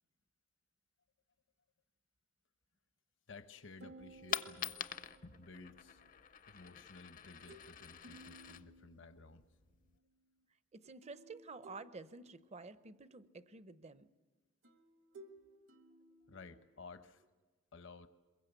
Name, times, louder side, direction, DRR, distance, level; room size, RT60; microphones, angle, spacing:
voice 1, 3.3-4.8 5.2-6.0 6.5-9.5 16.3-17.2 17.7-18.1, left 3 dB, 65° left, 10 dB, 1.0 m, -55 dB
sound 1, 3.8-6.1 7.5-7.8 8.0-9.3 11.0-12.7 14.6-16.9, right 2 dB, 75° right, 1.6 m, -58 dB
Coin (dropping), 4.0-10.0, left 8 dB, 40° left, 0.6 m, -46 dB
voice 2, 10.7-14.1, right 3 dB, 35° right, 14 dB, 0.7 m, -51 dB
22.5 x 21.5 x 8.1 m, 1.3 s
head